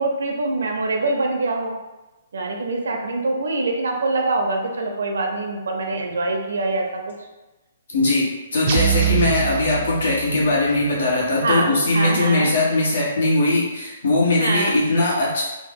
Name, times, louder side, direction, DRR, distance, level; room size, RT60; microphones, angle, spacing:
voice 1, 0.0-1.7 2.3-7.1 11.4-12.5 14.4-14.7, right 2 dB, 85° right, 2 dB, 0.6 m, -24 dB
voice 2, 7.9-15.4, left 2 dB, 75° left, -5 dB, 1.2 m, -20 dB
sound 1, 8.7-10.6, right 10 dB, 40° right, 0.3 m, -24 dB
3.0 x 2.1 x 3.6 m, 1.1 s
hypercardioid pair, 160°, 0 cm